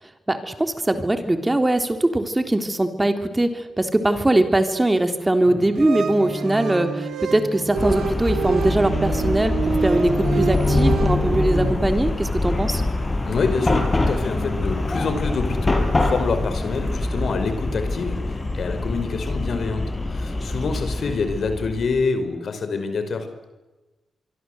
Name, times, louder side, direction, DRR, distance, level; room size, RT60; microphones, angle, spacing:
voice 1, 0.3-12.8, right 1 dB, 20° right, 7 dB, 3.6 m, -21 dB
sound 1, 5.4-11.7, right 5 dB, 80° right, 3.6 m, -27 dB
Chatter / Car passing by / Traffic noise roadway noise, 7.8-22.0, left 2 dB, 30° left, 5.9 m, -24 dB
voice 2, 13.2-15.8 16.1-23.3, left 4 dB, 65° left, 9 dB, 5.0 m, -26 dB
25.0 x 24.5 x 8.0 m, 1.1 s
supercardioid pair, 55°, 0 cm